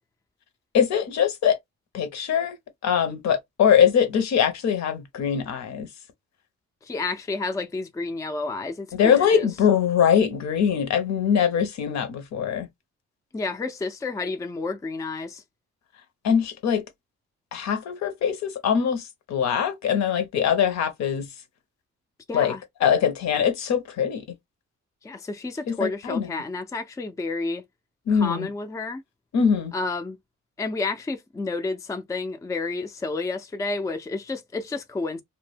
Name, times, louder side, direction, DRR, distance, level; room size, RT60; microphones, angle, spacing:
voice 1, 0.7-1.6 1.9-2.6 2.8-5.9 8.9-12.7 16.2-16.8 17.5-21.3 22.3-22.6 22.8-24.2 25.7-26.3 28.1-28.5 29.3-29.7, left 8 dB, 65° left, 0.7 m, -22 dB
voice 2, 6.8-9.5 13.3-15.4 22.3-22.6 25.0-27.6 28.1-29.0 29.7-30.2 30.6-35.2, left 3 dB, 10° left, 0.4 m, -30 dB
2.1 x 2.1 x 3.2 m
cardioid pair, 90°, 30 cm